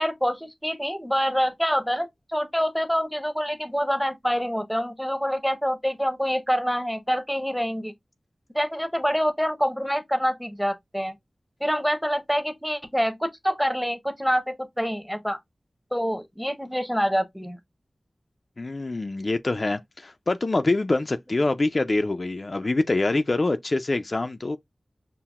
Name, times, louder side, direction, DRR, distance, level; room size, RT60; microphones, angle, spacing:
voice 1, 0.0-7.9 8.5-11.1 11.6-15.4 15.9-17.6, equal, ahead, 0.7 m, -26 dB
voice 2, 18.6-24.6, left 2 dB, 50° left, 0.3 m, -25 dB
5.6 x 2.0 x 2.3 m
wide cardioid pair, 50°, 0 cm